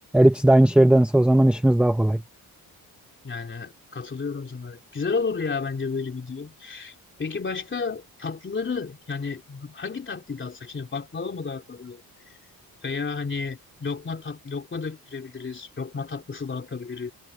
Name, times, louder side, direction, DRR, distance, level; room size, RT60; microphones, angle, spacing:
voice 1, 0.1-2.2, right 1 dB, 5° right, 0.6 m, -17 dB
voice 2, 3.2-12.0 12.8-17.1, left 4 dB, 30° left, 3.2 m, -32 dB
wide cardioid pair, 140°, 37 cm